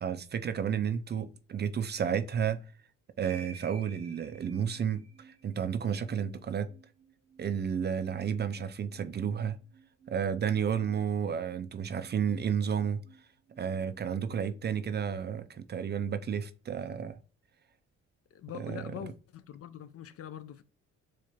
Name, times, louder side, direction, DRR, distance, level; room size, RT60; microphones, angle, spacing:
voice 1, 0.0-2.6 3.2-6.7 7.4-9.6 10.1-13.0 13.6-17.2 18.5-18.9, right 8 dB, 35° right, 0.4 m, -32 dB
sound 1, 3.2-15.3, right 4 dB, 55° right, 0.8 m, -56 dB
voice 2, 18.3-20.6, left 10 dB, 50° left, 0.5 m, -43 dB
4.4 x 2.4 x 2.8 m
cardioid pair, 90°, 30 cm